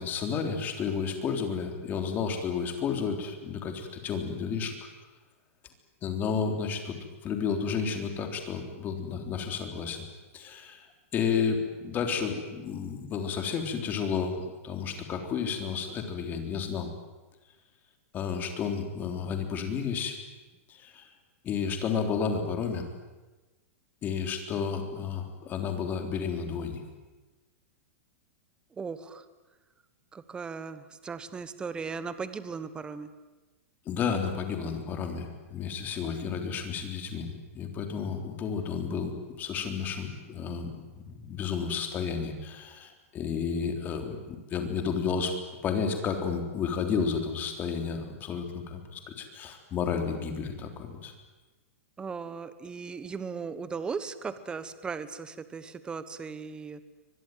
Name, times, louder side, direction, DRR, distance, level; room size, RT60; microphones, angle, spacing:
voice 1, 0.0-4.8 6.0-7.0 7.2-10.1 10.3-10.9 11.1-14.3 14.6-16.9 18.1-20.2 20.8-21.1 21.4-22.8 24.0-26.8 33.9-51.1, left 6 dB, 25° left, 5 dB, 3.6 m, -32 dB
voice 2, 28.7-29.2 30.1-33.1 52.0-56.8, right 5 dB, 10° right, 13 dB, 1.2 m, -37 dB
24.0 x 21.5 x 9.3 m, 1.2 s
supercardioid pair, 155°, 8 cm